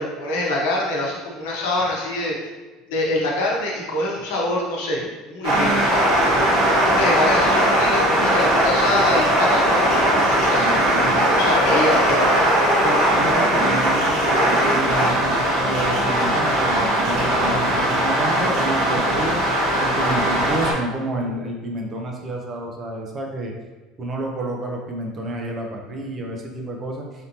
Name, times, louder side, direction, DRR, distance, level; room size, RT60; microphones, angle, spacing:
voice 1, 0.0-2.4 2.9-10.7 11.1-12.5, left 2 dB, 90° left, -3 dB, 0.8 m, -25 dB
sound 1, 5.4-20.7, right 1 dB, 55° right, 1.3 m, -19 dB
voice 2, 12.8-14.2 14.6-19.4 19.8-23.5 24.0-27.1, right 2 dB, 30° right, 1 dB, 0.5 m, -29 dB
3.4 x 2.7 x 2.8 m, 1.2 s
cardioid pair, 130°, 0 cm